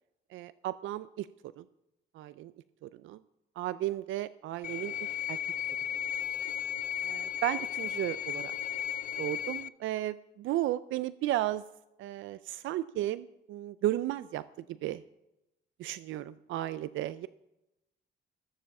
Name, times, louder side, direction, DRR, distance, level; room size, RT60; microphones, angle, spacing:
voice 1, 0.3-1.3 1.6-1.7 2.1-2.5 2.8-3.2 3.6-5.4 7.0-8.5 9.2-11.6 12.0-14.4 14.7-15.0 15.8-17.3, right 14 dB, 80° right, 15 dB, 0.4 m, -34 dB
sound 1, 4.6-9.7, left 10 dB, 45° left, 0.4 m, -35 dB
13.5 x 7.1 x 7.1 m, 0.91 s
cardioid pair, 90°, 20 cm